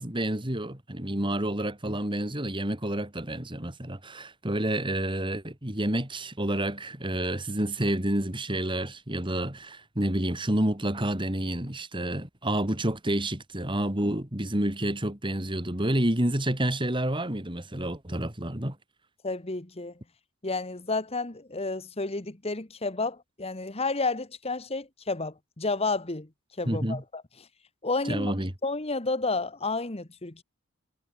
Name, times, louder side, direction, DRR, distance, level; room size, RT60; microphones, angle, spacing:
voice 1, 0.0-18.8 26.6-27.0 28.1-28.5, right 1 dB, 25° right, 2.8 m, -29 dB
voice 2, 19.2-19.9 20.4-26.3 26.6-27.2 27.8-28.3 28.6-30.4, left 3 dB, 30° left, 1.4 m, -31 dB
head